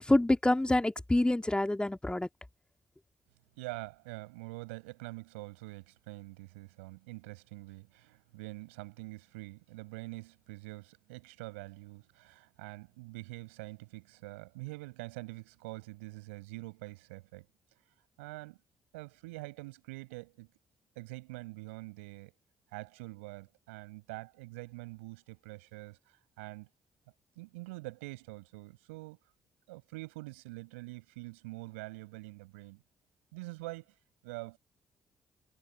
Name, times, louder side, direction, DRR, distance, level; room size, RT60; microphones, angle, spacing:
voice 1, 0.0-2.3, left 1 dB, 15° left, 2.1 m, -27 dB
voice 2, 3.6-17.5 18.2-18.6 18.9-20.5 21.0-22.3 22.7-26.7 27.4-29.2 29.7-32.8 33.3-33.9 34.2-34.6, right 24 dB, 90° right, 7.5 m, -45 dB
hypercardioid pair, 45°, 7 cm